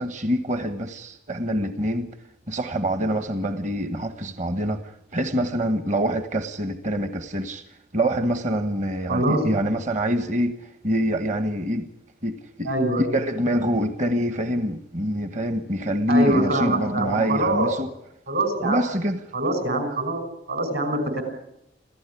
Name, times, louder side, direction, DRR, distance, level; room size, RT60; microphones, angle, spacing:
voice 1, 0.0-2.1 2.5-7.6 7.9-10.6 10.8-11.9 12.2-12.7 13.0-17.9 18.6-19.2, equal, 40° right, 1.3 m, -25 dB
voice 2, 9.1-9.5 12.6-13.1 16.1-17.7 18.3-18.8 19.3-21.2, right 2 dB, 60° right, 5.7 m, -24 dB
27.5 x 15.0 x 10.0 m
head